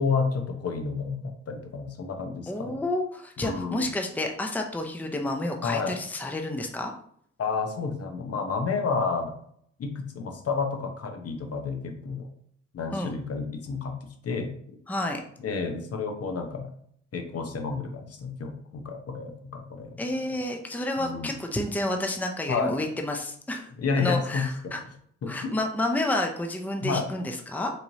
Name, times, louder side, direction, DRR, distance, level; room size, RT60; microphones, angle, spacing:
voice 1, 0.0-2.8 3.4-3.9 5.6-6.0 7.4-9.3 9.8-12.3 12.7-14.5 15.4-16.7 17.1-20.0 21.0-21.3 22.5-22.8 23.8-24.7 25.2-25.6 26.8-27.1, left 4 dB, 55° left, 4 dB, 0.9 m, -30 dB
voice 2, 2.5-6.9 12.9-13.1 14.9-15.2 20.0-23.7 24.0-24.8 25.3-27.7, left 1 dB, 5° left, 3 dB, 0.6 m, -30 dB
4.3 x 3.1 x 2.7 m, 0.66 s
supercardioid pair, 60°, 30 cm